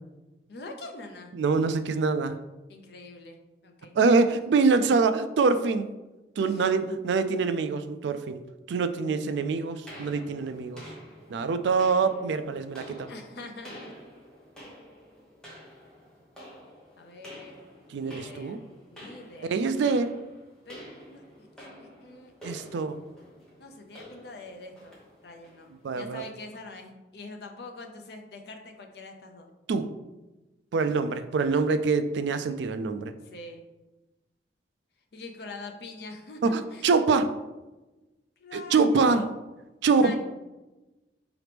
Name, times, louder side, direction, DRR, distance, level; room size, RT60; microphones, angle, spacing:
voice 1, 0.5-1.3 2.7-4.0 6.4-6.7 13.1-14.0 17.0-17.6 17.9-18.6 18.9-19.6 20.7-20.8 21.1-22.7 23.6-25.0 25.2-29.5 30.8-31.1 33.2-33.7 35.1-36.9 38.4-39.4 39.8-40.2, left 2 dB, 65° left, 4 dB, 0.6 m, -44 dB
voice 2, 1.3-2.4 4.0-5.9 6.4-8.4 8.7-10.8 11.3-13.1 17.9-18.6 19.4-20.1 22.4-23.0 25.8-26.2 29.7-29.9 30.7-33.1 36.4-37.3 38.5-39.2 39.8-40.2, right 4 dB, 75° right, 10 dB, 0.3 m, -25 dB
sound 1, 9.9-26.2, equal, 5° left, 0.9 m, -49 dB
4.9 x 3.0 x 3.3 m, 1.1 s
head